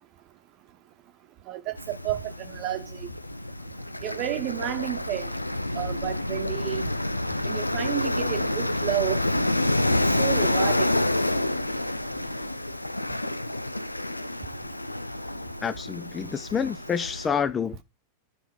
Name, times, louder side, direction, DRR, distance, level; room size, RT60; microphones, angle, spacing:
voice 1, 1.5-3.1 4.0-5.3 5.7-6.9 7.4-9.2 10.2-11.0, right 14 dB, 40° right, 1.0 m, -31 dB
sound 1, 1.8-17.3, left 1 dB, 85° left, 0.6 m, -28 dB
sound 2, 4.5-12.5, right 1 dB, 80° right, 1.0 m, -45 dB
voice 2, 15.6-17.8, left 7 dB, 20° left, 0.6 m, -28 dB
12.0 x 5.9 x 5.2 m
figure-of-eight pair, 90°, 0 cm